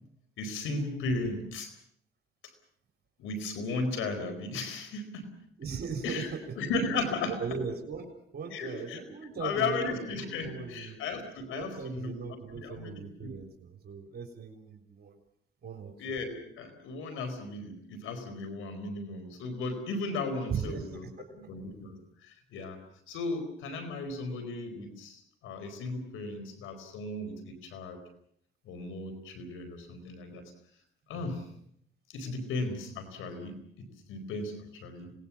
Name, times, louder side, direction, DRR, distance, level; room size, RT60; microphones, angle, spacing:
voice 1, 0.4-1.7 3.2-5.3 6.0-6.3 6.6-7.4 8.5-9.0 9.4-12.2 12.5-13.3 16.0-21.0 21.4-22.8 23.1-28.0 28.7-30.4 31.1-31.5 32.1-35.1, left 3 dB, 90° left, 8 dB, 4.5 m, -35 dB
voice 2, 5.6-6.5 7.3-11.0 11.5-15.2 15.6-15.9 20.5-21.3 31.1-31.4, right 5 dB, 55° right, 4 dB, 3.7 m, -39 dB
26.0 x 19.5 x 7.2 m, 0.69 s
cardioid pair, 90°, 20 cm